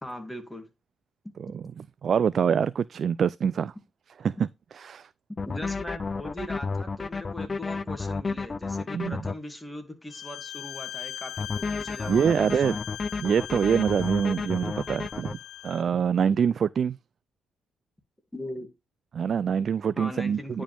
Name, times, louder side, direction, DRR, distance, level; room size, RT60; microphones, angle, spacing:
voice 1, 0.0-0.7 5.5-12.8 18.3-18.7 20.0-20.6, left 1 dB, 10° left, 2.3 m, -40 dB
voice 2, 1.4-3.7 4.2-4.3 4.7-5.1 8.9-9.2 12.1-12.8 13.2-15.4 15.6-17.0 19.1-20.6, right 7 dB, 50° right, 0.3 m, -25 dB
sound 1, 5.4-9.3 11.4-15.3, left 4 dB, 30° left, 0.4 m, -32 dB
Bowed string instrument, 10.1-15.9, left 12 dB, 85° left, 0.6 m, -40 dB
10.0 x 5.3 x 3.5 m
cardioid pair, 90°, 0 cm